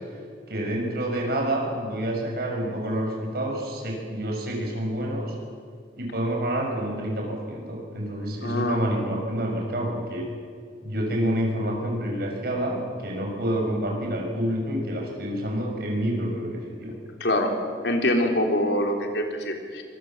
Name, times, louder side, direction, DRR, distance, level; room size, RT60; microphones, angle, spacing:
voice 1, 0.5-5.4 6.0-10.3 10.8-16.9, right 1 dB, 60° right, 0 dB, 6.6 m, -28 dB
voice 2, 8.4-8.8 17.2-17.5 17.8-19.8, left 1 dB, 80° left, 3 dB, 3.8 m, -24 dB
25.0 x 21.5 x 7.5 m, 2.1 s
head